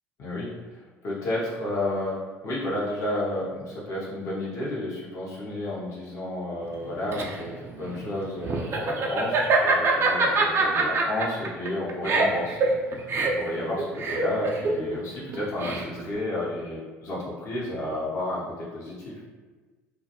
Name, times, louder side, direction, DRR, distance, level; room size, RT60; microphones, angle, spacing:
voice 1, 1.0-2.2 2.4-12.6 12.8-13.1 13.3-19.2, left 1 dB, 45° left, -6 dB, 0.7 m, -31 dB
Laughter, 6.7-16.1, right 3 dB, 35° right, 0.4 m, -25 dB
2.3 x 2.1 x 2.8 m, 1.4 s
figure-of-eight pair, 65°, 7 cm